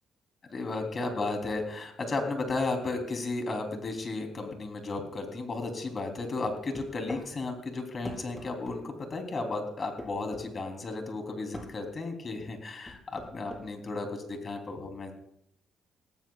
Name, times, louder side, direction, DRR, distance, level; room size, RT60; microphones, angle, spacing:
voice 1, 0.5-15.1, left 3 dB, 40° left, 4 dB, 3.2 m, -34 dB
sound 1, 6.4-7.3 8.0-8.8 10.0-10.5 11.5-11.7 12.9-13.7, left 1 dB, 10° left, 4.2 m, -41 dB
18.0 x 16.0 x 2.4 m, 0.71 s
cardioid pair, 90°, 0 cm